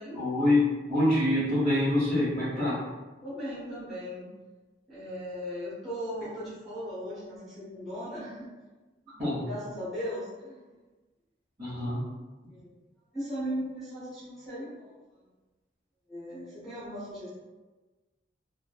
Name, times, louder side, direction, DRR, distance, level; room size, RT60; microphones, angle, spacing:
voice 1, 0.1-2.8 9.2-9.5 11.6-12.0, left 1 dB, 35° right, -15 dB, 1.1 m, -25 dB
voice 2, 3.2-4.3 4.9-8.5 9.2-10.6 12.5-12.7 13.1-14.9 16.1-17.3, equal, ahead, -13 dB, 0.9 m, -37 dB
3.2 x 2.1 x 2.3 m, 1.2 s
head